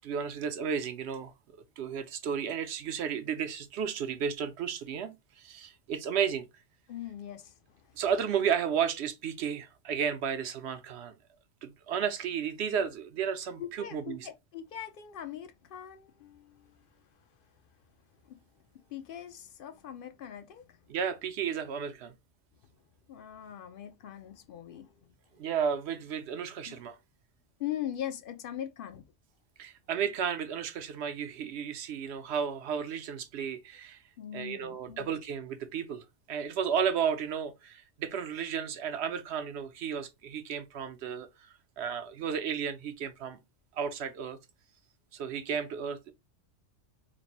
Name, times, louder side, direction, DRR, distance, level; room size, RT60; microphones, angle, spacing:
voice 1, 0.0-1.3 1.8-6.5 8.0-11.1 11.6-14.3 20.9-22.1 25.4-27.0 29.6-34.0 34.3-41.3 41.8-43.4 43.7-44.4 45.1-46.1, right 7 dB, 70° right, 0.9 m, -33 dB
voice 2, 6.9-7.8 13.6-16.9 18.2-18.4 18.7-20.8 23.1-25.1 26.7-26.8 27.6-29.0 34.2-35.1, left 10 dB, 60° left, 0.7 m, -41 dB
3.2 x 2.5 x 4.1 m
omnidirectional pair, 1.2 m